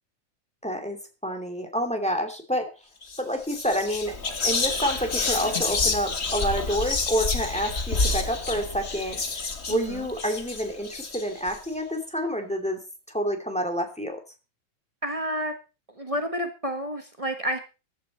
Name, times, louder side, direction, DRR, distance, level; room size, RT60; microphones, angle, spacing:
voice 1, 0.6-2.7 3.2-12.8 13.1-14.2, equal, ahead, 5 dB, 2.3 m, -28 dB
Whispering, 3.0-3.2 3.5-11.6, left 3 dB, 30° left, 1.2 m, -29 dB
voice 2, 9.7-10.1 15.0-15.5 16.0-17.6, equal, 45° right, 6 dB, 0.4 m, -30 dB
15.0 x 11.5 x 4.2 m, 0.31 s
omnidirectional pair, 3.3 m